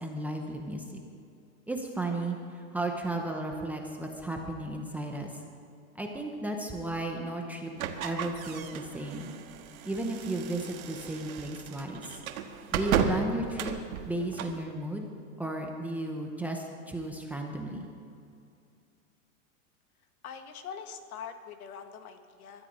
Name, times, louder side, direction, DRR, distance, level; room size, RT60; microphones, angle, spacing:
voice 1, 0.0-1.0 1.7-5.3 5.9-7.7 8.0-9.3 9.8-12.2 12.7-13.7 14.1-15.1 15.4-17.9, right 2 dB, 5° right, 1 dB, 0.7 m, -34 dB
sound 1, 7.8-14.6, right 7 dB, 70° right, 1.5 m, -35 dB
voice 2, 20.2-22.7, left 7 dB, 75° left, 7 dB, 1.7 m, -43 dB
20.5 x 12.5 x 5.3 m, 2.5 s
supercardioid pair, 160°, 44 cm